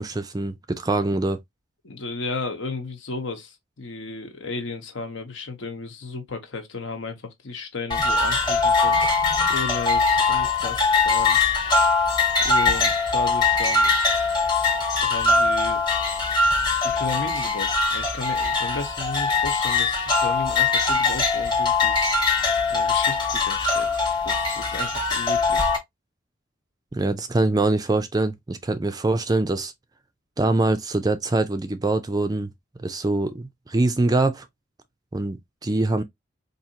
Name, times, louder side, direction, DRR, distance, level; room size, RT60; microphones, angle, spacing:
voice 1, 0.0-1.4 26.9-29.7 30.4-32.5 32.8-34.5 35.1-36.0, right 2 dB, 20° right, 0.4 m, -24 dB
voice 2, 1.8-9.0 9.5-11.4 12.4-13.9 15.0-15.8 16.8-22.1 22.7-25.7, left 3 dB, 70° left, 1.0 m, -34 dB
sound 1, 7.9-25.8, left 4 dB, 20° left, 1.0 m, -22 dB
4.3 x 2.8 x 2.8 m
head